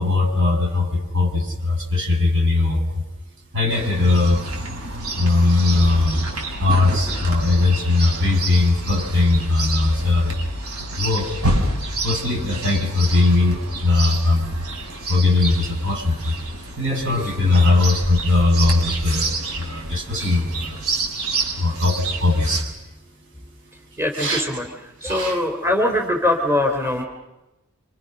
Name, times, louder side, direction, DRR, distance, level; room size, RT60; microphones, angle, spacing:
voice 1, 0.0-2.8 3.5-4.4 5.2-6.3 6.6-10.4 11.0-11.3 12.0-14.5 15.1-16.3 16.8-19.3 19.6-20.8 21.6-22.6 24.2-24.4 25.0-25.4, left 2 dB, 55° right, 1 dB, 7.4 m, -19 dB
Chirp tweet, 3.7-22.6, right 2 dB, 75° right, 7.0 m, -29 dB
voice 2, 16.9-17.3 24.0-24.7 25.0-27.0, left 1 dB, 10° right, 2 dB, 3.3 m, -22 dB
29.0 x 26.5 x 6.6 m, 0.99 s
head